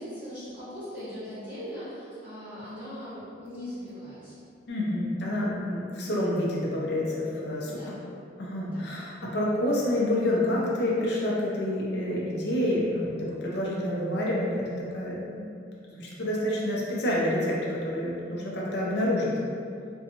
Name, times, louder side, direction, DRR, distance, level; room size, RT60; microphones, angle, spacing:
voice 1, 0.0-4.4 7.6-8.2 8.6-8.9, equal, 5° right, -17 dB, 1.0 m, -40 dB
voice 2, 4.7-7.8 8.4-15.5 15.8-19.4, left 1 dB, 65° left, -4 dB, 0.5 m, -28 dB
2.6 x 2.2 x 2.8 m, 2.4 s
head